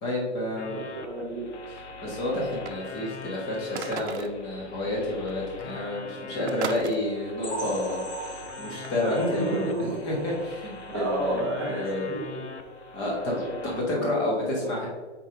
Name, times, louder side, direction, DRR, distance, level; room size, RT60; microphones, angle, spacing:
voice 1, 0.0-0.8 2.0-12.1 12.9-13.4 13.7-14.9, left 1 dB, 15° left, -3 dB, 1.1 m, -30 dB
sound 1, 0.6-13.8, left 4 dB, 75° left, 0.9 m, -42 dB
voice 2, 0.7-1.5 9.1-10.0 10.9-12.5 13.3-14.1 14.4-14.7, right 2 dB, 20° right, -5 dB, 0.4 m, -31 dB
sound 2, 2.3-3.1 3.8-4.4 5.3-5.4 5.6-5.9 6.5-7.0 8.8-9.0, right 6 dB, 65° right, 0.7 m, -36 dB
sound 3, 7.4-11.1 11.4-11.6 12.0-12.1 12.5-12.6, right 2 dB, 50° left, 1.4 m, -40 dB
4.6 x 4.2 x 5.1 m, 1.3 s
hypercardioid pair, 170°, 35 cm